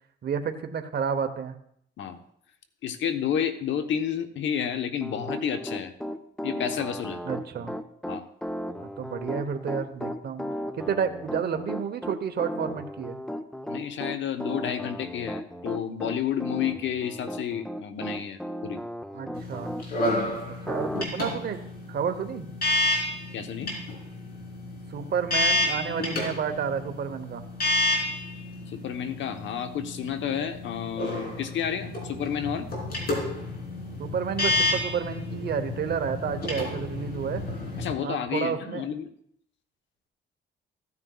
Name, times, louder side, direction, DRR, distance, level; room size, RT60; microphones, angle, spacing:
voice 1, 0.2-1.6 7.2-7.7 8.8-10.5 10.7-13.2 19.1-19.8 20.5-21.6 21.9-22.5 24.9-27.4 34.0-37.4 38.0-38.9, right 7 dB, 55° right, 8 dB, 1.0 m, -30 dB
voice 2, 2.8-5.9 6.4-7.2 8.1-8.3 13.7-18.8 23.3-23.7 28.7-32.7 37.8-39.1, left 8 dB, 70° left, 8 dB, 1.0 m, -30 dB
Piano, 5.0-20.2 20.7-21.0, equal, 5° left, 0.6 m, -35 dB
sound 1, 19.3-37.9, left 2 dB, 50° left, 3.6 m, -30 dB
15.0 x 9.6 x 2.4 m, 0.68 s
cardioid pair, 90°, 20 cm